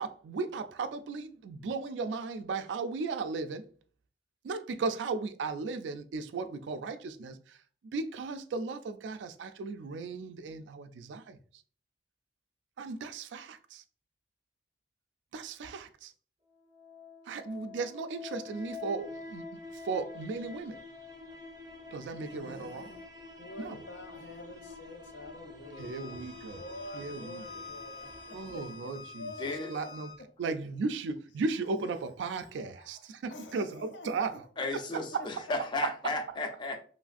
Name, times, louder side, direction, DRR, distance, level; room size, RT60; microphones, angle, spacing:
voice 1, 0.0-3.7 4.4-7.6 7.9-11.4 12.8-13.8 15.3-16.1 17.3-19.4 19.7-20.8 21.9-22.9 23.6-23.8 25.8-26.6 26.9-27.4 28.3-29.2 29.7-30.1 30.4-34.3 34.7-35.2, right 4 dB, 85° right, 0.3 m, -36 dB
sound 1, 16.5-29.5, left 3 dB, 20° right, 0.5 m, -47 dB
voice 2, 22.2-23.0 23.4-29.9 30.2-30.3 32.8-35.6, left 2 dB, 90° left, 0.6 m, -47 dB
Bowed string instrument, 25.7-30.2, left 3 dB, 60° left, 1.1 m, -48 dB
voice 3, 29.4-29.7 34.6-36.8, left 2 dB, 25° left, 0.4 m, -34 dB
3.1 x 2.4 x 2.4 m
head